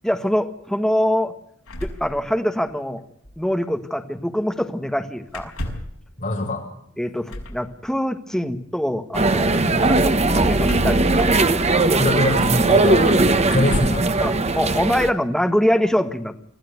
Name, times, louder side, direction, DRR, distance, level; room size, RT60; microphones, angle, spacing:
voice 1, 0.0-1.3 1.8-3.0 3.4-5.5 7.0-11.3 11.9-12.0 14.2-16.4, equal, ahead, 6 dB, 1.5 m, -24 dB
sound 1, 1.7-2.7 3.0-3.1 3.2-3.5 5.3-6.0 7.3-7.6 10.6-11.8 12.6-12.7 13.4-14.1, left 1 dB, 70° left, 5.5 m, -31 dB
voice 2, 6.2-6.6 9.6-9.8 12.0-14.1, left 1 dB, 40° left, 1 dB, 7.5 m, -23 dB
sound 2, 9.1-15.1, right 2 dB, 30° right, 1.3 m, -19 dB
24.5 x 15.5 x 9.3 m, 0.72 s
head